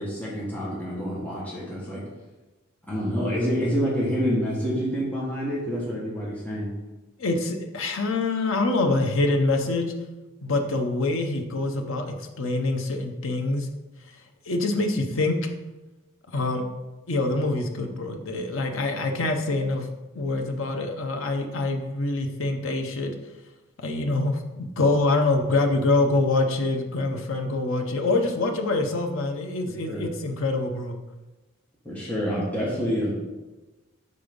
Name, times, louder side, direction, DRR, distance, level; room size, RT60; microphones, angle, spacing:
voice 1, 0.0-2.0 2.9-6.7 29.9-30.1 31.8-33.2, equal, 10° left, -7 dB, 1.4 m, -27 dB
voice 2, 7.2-9.9 10.4-13.7 14.5-15.4 16.3-16.6 17.1-19.9 20.1-23.1 23.8-31.0, left 2 dB, 80° left, 4 dB, 0.9 m, -25 dB
5.5 x 4.8 x 5.2 m, 1.1 s
head